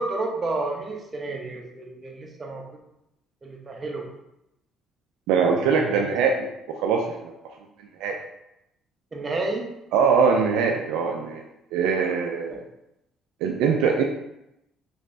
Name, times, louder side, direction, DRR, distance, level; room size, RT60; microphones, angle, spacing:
voice 1, 0.0-2.7 3.4-4.1 5.9-6.0 9.1-9.7 12.5-12.6, right 2 dB, 35° right, 1 dB, 0.8 m, -30 dB
voice 2, 5.3-6.5 6.8-7.3 8.0-8.2 9.9-11.4 11.7-12.6 13.4-14.0, right 5 dB, 80° right, 1 dB, 0.3 m, -22 dB
3.2 x 3.0 x 2.6 m, 0.86 s
supercardioid pair, 65°, 0 cm